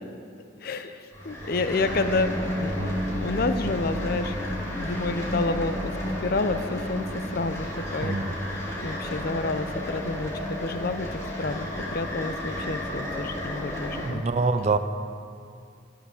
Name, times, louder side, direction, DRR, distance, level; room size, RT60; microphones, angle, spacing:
voice 1, 0.6-4.3 4.8-7.0 7.3-8.2 8.8-11.7 11.9-14.2, left 3 dB, 50° left, 10 dB, 0.5 m, -29 dB
sound 1, 1.1-14.1, equal, 15° left, 1.6 m, -32 dB
voice 2, 8.0-8.4 14.0-14.8, right 3 dB, 35° right, 10 dB, 0.4 m, -25 dB
12.5 x 5.8 x 7.0 m, 2.3 s
head